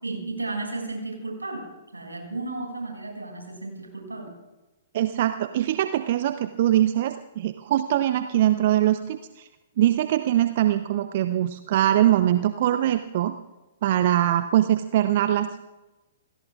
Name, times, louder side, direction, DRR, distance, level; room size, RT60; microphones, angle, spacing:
voice 1, 0.0-1.6 1.9-4.3, right 2 dB, 80° right, 1 dB, 6.1 m, -33 dB
voice 2, 4.9-9.5 9.8-13.3 13.8-15.6, right 12 dB, 50° right, 10 dB, 0.7 m, -22 dB
29.5 x 16.5 x 2.4 m, 1.1 s
figure-of-eight pair, 115°, 0 cm